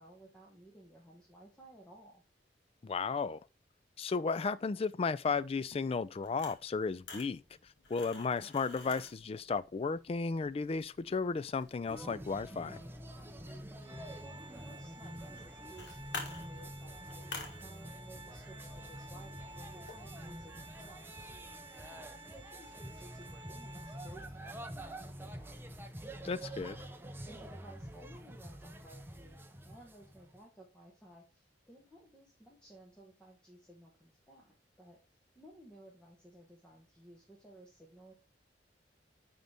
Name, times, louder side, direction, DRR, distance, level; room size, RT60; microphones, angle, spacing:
voice 1, 0.0-2.2 13.5-13.8 14.2-21.3 21.9-25.6 26.4-26.7 27.3-29.4 29.6-35.0 35.3-38.1, right 1 dB, 5° left, 1.4 m, -57 dB
voice 2, 2.8-3.4 4.0-7.4 7.9-12.8 26.2-26.8, left 4 dB, 35° left, 0.3 m, -34 dB
sound 1, 5.3-21.9, left 3 dB, 80° left, 1.7 m, -52 dB
sound 2, 11.9-30.4, right 1 dB, 15° right, 0.6 m, -47 dB
Organ, 13.8-24.5, right 2 dB, 30° right, 1.1 m, -54 dB
9.3 x 3.9 x 3.5 m
head